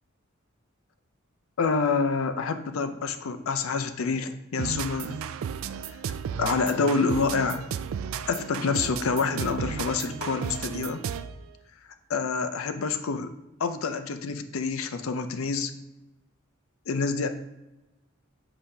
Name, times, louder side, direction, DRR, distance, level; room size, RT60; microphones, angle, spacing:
voice 1, 1.6-5.2 5.9-6.0 6.4-7.7 8.3-11.0 12.1-13.3 13.6-15.7 16.9-17.3, left 4 dB, 85° left, 9 dB, 0.5 m, -27 dB
sound 1, 4.6-11.4, right 7 dB, 75° right, 0.3 m, -34 dB
7.7 x 4.9 x 2.8 m, 0.99 s
head